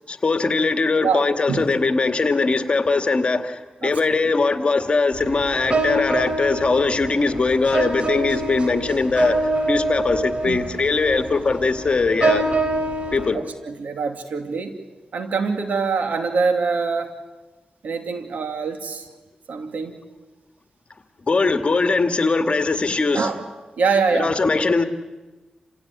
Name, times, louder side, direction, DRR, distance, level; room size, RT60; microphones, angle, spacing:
voice 1, 0.1-9.4 9.7-12.5 13.1-13.4 21.3-23.3 24.1-24.8, left 3 dB, 45° left, 2.0 m, -21 dB
voice 2, 1.0-1.7 3.8-4.2 10.4-10.7 13.3-14.8 15.1-17.1 17.8-19.1 19.5-20.0 23.1-23.4 23.8-24.4, right 5 dB, 80° right, 2.7 m, -24 dB
sound 1, 5.1-13.3, right 2 dB, 45° right, 3.8 m, -25 dB
28.0 x 16.5 x 9.7 m
cardioid pair, 65°, 3 cm